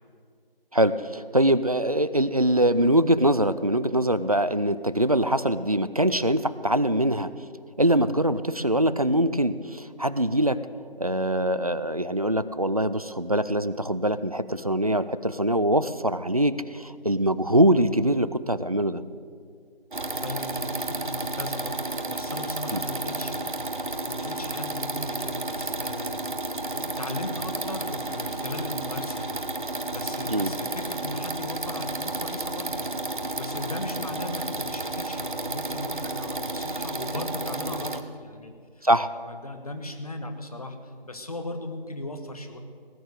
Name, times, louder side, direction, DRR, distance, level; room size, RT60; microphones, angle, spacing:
voice 1, 0.7-7.3 7.8-10.6 11.0-19.0 22.7-22.8 30.3-30.5 38.8-39.1, right 1 dB, 40° right, 14 dB, 0.4 m, -23 dB
sound 1, 19.9-38.0, right 2 dB, 55° right, 1.0 m, -32 dB
voice 2, 20.0-38.8 39.1-42.6, left 1 dB, 40° left, 6 dB, 1.4 m, -37 dB
18.5 x 9.3 x 6.7 m, 2.2 s
figure-of-eight pair, 170°, 29 cm